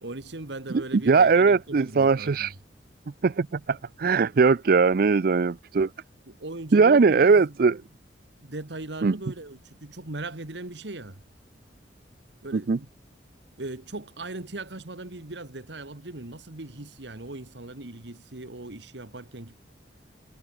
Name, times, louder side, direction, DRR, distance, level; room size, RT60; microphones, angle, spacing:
voice 1, 0.0-2.5 6.3-7.6 8.4-11.2 12.4-12.9 13.6-19.6, right 2 dB, 70° right, 1.8 m, -39 dB
voice 2, 0.9-2.5 3.2-5.9 6.7-7.8 9.0-9.1 12.5-12.8, right 4 dB, 55° right, 0.5 m, -20 dB
head